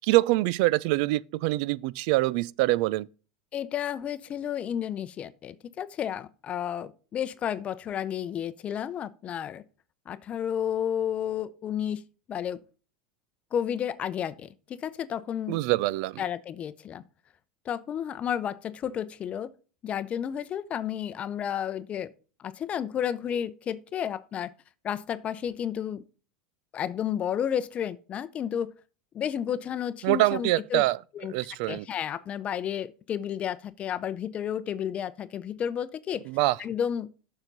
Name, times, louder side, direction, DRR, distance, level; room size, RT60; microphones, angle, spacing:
voice 1, 0.0-3.1 15.5-16.2 30.0-31.0 31.3-31.9 36.3-36.6, right 18 dB, 65° right, 0.4 m, -24 dB
voice 2, 3.5-9.6 10.1-12.0 12.3-12.6 13.5-15.6 16.2-17.0 17.7-19.5 19.8-22.1 22.4-24.5 24.8-26.0 26.7-28.7 29.1-30.8 31.1-31.3 31.7-36.3 36.6-37.1, left 9 dB, 35° left, 0.6 m, -32 dB
7.2 x 6.7 x 3.9 m
hypercardioid pair, 100°, 4 cm